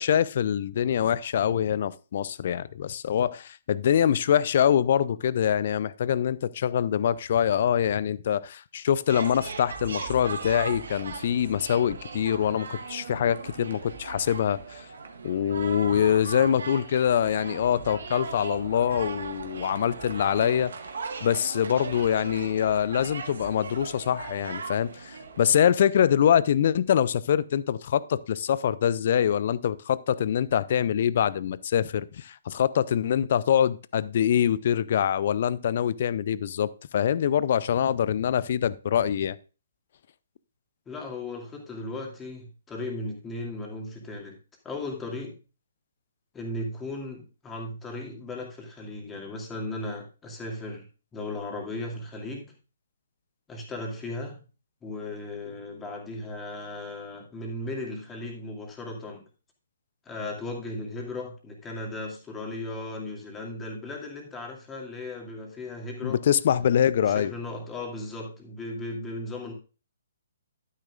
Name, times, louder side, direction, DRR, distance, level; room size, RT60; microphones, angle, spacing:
voice 1, 0.0-14.8 15.2-20.7 21.2-39.4 66.0-67.3, left 9 dB, 50° left, 0.5 m, -24 dB
sound 1, 9.1-25.6, right 5 dB, 65° right, 1.6 m, -38 dB
voice 2, 40.9-44.4 44.6-45.4 46.3-50.8 51.1-52.5 53.5-54.4 54.8-59.2 60.1-66.2 67.0-69.5, left 2 dB, 15° left, 2.4 m, -36 dB
11.5 x 9.7 x 2.5 m
figure-of-eight pair, 130°, 0 cm